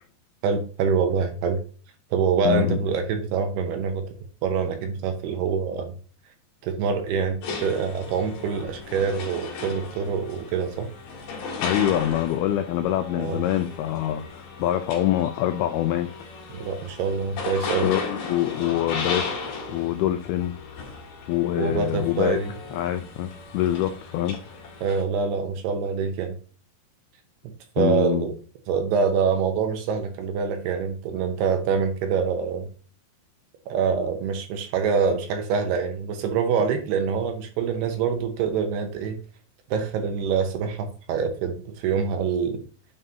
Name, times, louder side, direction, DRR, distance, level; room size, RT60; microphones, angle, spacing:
voice 1, 0.4-1.6 2.1-4.0 4.4-5.9 6.6-10.9 13.2-13.4 16.5-17.9 21.6-22.5 24.8-26.4 27.4-28.3 28.7-32.7 33.7-39.2 39.7-42.6, right 6 dB, 75° right, 2.8 m, -25 dB
voice 2, 2.5-2.8 11.6-16.1 17.8-19.3 19.7-20.5 21.3-22.4 22.7-24.4 27.8-28.3, left 12 dB, 85° left, 2.2 m, -25 dB
sound 1, 7.4-25.0, left 4 dB, 60° left, 3.3 m, -36 dB
9.6 x 5.4 x 2.8 m
omnidirectional pair, 5.1 m